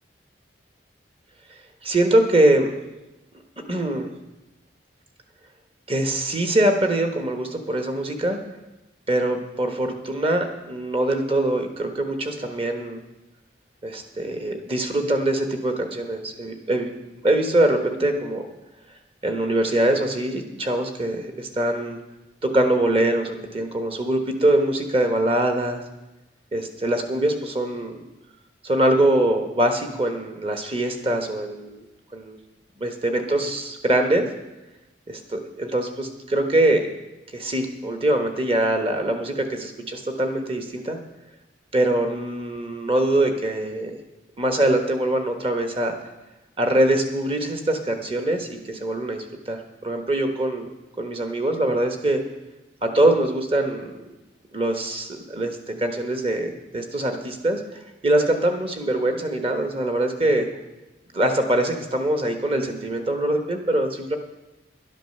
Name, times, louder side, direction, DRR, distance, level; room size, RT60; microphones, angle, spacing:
voice 1, 1.8-2.7 3.7-4.1 5.9-8.4 9.1-13.0 13.8-16.9 17.2-18.4 19.2-22.0 22.4-25.8 26.5-27.9 28.6-31.8 32.1-32.4 32.8-34.3 35.1-36.9 37.3-41.0 41.7-44.0 44.4-46.0 46.6-50.7 51.0-52.2 52.8-53.9 54.5-60.5 61.1-64.2, right 1 dB, 30° right, 5 dB, 1.2 m, -23 dB
11.0 x 9.1 x 6.6 m, 1.0 s
head